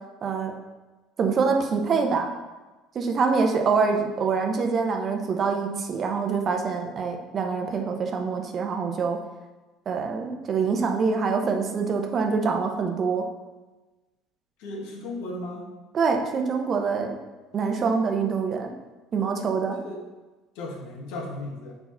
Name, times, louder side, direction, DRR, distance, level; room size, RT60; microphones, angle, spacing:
voice 1, 0.2-0.5 1.2-2.3 2.9-9.2 9.9-13.2 15.9-17.1 17.5-18.7 19.1-19.8, right 5 dB, 45° right, 3 dB, 0.9 m, -25 dB
voice 2, 14.6-15.7 19.7-20.0 20.5-21.7, left 2 dB, 75° left, -1 dB, 1.4 m, -35 dB
4.7 x 4.0 x 5.7 m, 1.2 s
hypercardioid pair, 80°, 0 cm